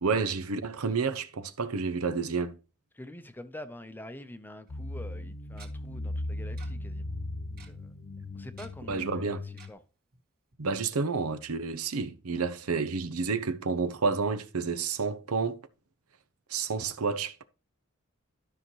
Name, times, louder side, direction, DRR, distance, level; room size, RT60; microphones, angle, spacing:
voice 1, 0.0-2.6 8.9-9.4 10.6-15.6 16.5-17.4, right 4 dB, 85° right, 0.8 m, -30 dB
voice 2, 2.9-7.1 7.7-7.9 8.3-9.8, left 1 dB, 10° left, 0.7 m, -46 dB
sound 1, 4.7-9.7, left 1 dB, 50° left, 0.6 m, -38 dB
Tick-tock, 4.7-4.8 5.6-5.7 6.6-6.7 6.9-7.0 7.3-7.7 8.6-9.0 9.6-9.7 10.1-10.2 10.5-10.6, right 5 dB, 45° right, 2.0 m, -51 dB
12.5 x 5.8 x 3.1 m
head